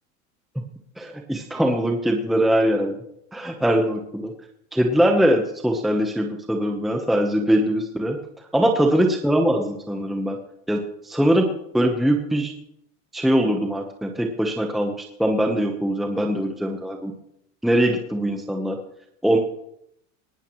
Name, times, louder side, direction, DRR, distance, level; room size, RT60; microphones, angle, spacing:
voice 1, 1.0-2.9 3.3-4.3 4.7-8.2 8.5-10.4 10.7-11.5 11.7-12.5 13.1-17.1 17.6-18.8 19.2-19.4, equal, ahead, 2 dB, 0.9 m, -22 dB
19.0 x 15.0 x 3.1 m, 0.76 s
supercardioid pair, 150°, 40 cm